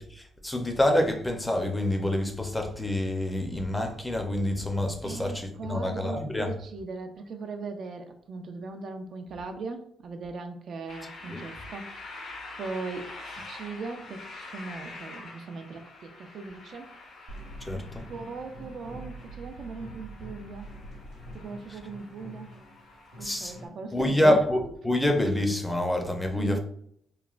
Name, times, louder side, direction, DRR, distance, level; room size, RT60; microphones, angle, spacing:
voice 1, 0.0-6.5 11.3-11.4 17.7-18.0 23.2-23.5 23.9-26.6, left 1 dB, 10° left, 0.5 m, -27 dB
voice 2, 5.0-12.3 12.6-16.9 17.7-20.7 21.3-22.5 23.2-24.4 26.4-26.6, right 4 dB, 60° right, 0.4 m, -39 dB
sound 1, 10.9-23.7, left 2 dB, 70° left, 0.8 m, -46 dB
sound 2, 17.3-23.9, right 1 dB, 85° right, 0.9 m, -45 dB
3.0 x 2.1 x 2.4 m
cardioid pair, 90°, 0 cm